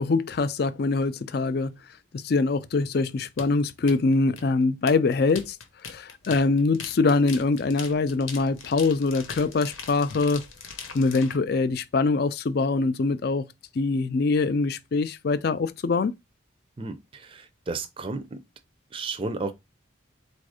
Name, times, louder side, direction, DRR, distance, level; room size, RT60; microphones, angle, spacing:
voice 1, 0.0-1.7 2.1-5.6 5.8-10.5 10.9-13.5 13.8-16.1, left 3 dB, 50° left, 0.4 m, -24 dB
sound 1, 3.4-11.4, left 5 dB, 85° left, 0.9 m, -41 dB
voice 2, 16.8-18.4 18.9-19.5, right 3 dB, 25° right, 0.4 m, -33 dB
4.2 x 2.5 x 4.8 m
head